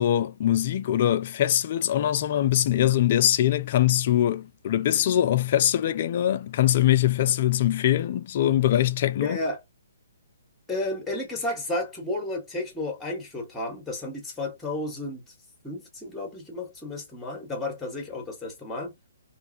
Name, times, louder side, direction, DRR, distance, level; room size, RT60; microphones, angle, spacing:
voice 1, 0.0-9.4, left 12 dB, 45° left, 0.3 m, -22 dB
voice 2, 9.2-9.6 10.7-15.2 15.6-19.0, left 2 dB, 5° left, 1.1 m, -32 dB
2.5 x 2.2 x 2.6 m
hypercardioid pair, 140°, 0 cm